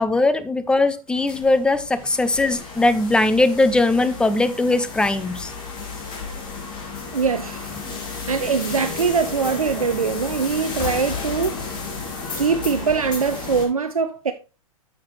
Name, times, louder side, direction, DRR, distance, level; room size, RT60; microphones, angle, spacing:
voice 1, 0.0-5.5, left 2 dB, 5° left, 0.5 m, -20 dB
sound 1, 1.1-13.7, left 4 dB, 25° left, 2.2 m, -33 dB
voice 2, 7.1-7.8 8.3-11.6 12.4-14.3, right 5 dB, 75° right, 0.6 m, -22 dB
9.3 x 6.6 x 3.1 m
figure-of-eight pair, 105°, 18 cm